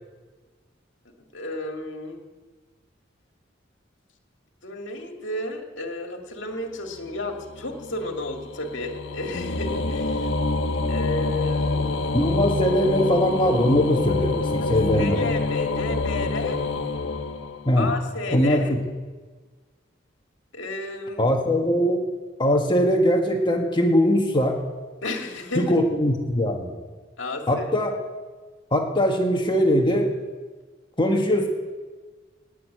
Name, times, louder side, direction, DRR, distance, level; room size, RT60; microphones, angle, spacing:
voice 1, 1.3-2.2 4.6-10.3 10.9-12.1 14.6-16.6 17.8-18.7 20.5-21.2 25.0-25.7 27.2-27.7, left 2 dB, 70° left, 3 dB, 2.1 m, -32 dB
sound 1, 7.1-18.0, left 3 dB, 85° left, 1.1 m, -27 dB
voice 2, 12.1-15.2 17.6-17.9 18.3-18.8 21.2-22.0 22.4-24.6 25.5-26.7 27.5-27.9 28.7-30.1 31.0-31.5, equal, 25° left, 2 dB, 1.6 m, -21 dB
18.5 x 6.5 x 9.2 m, 1.3 s
head